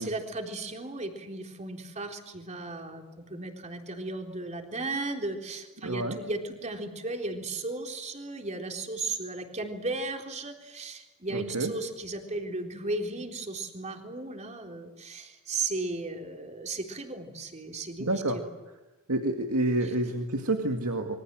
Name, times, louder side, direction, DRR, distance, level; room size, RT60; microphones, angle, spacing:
voice 1, 0.0-18.4 19.8-19.9, right 2 dB, 30° right, 3 dB, 3.8 m, -35 dB
voice 2, 5.8-6.2 11.3-11.7 18.0-18.4 19.1-21.2, right 2 dB, 80° right, 3 dB, 2.3 m, -28 dB
27.5 x 24.0 x 7.7 m, 1.1 s
head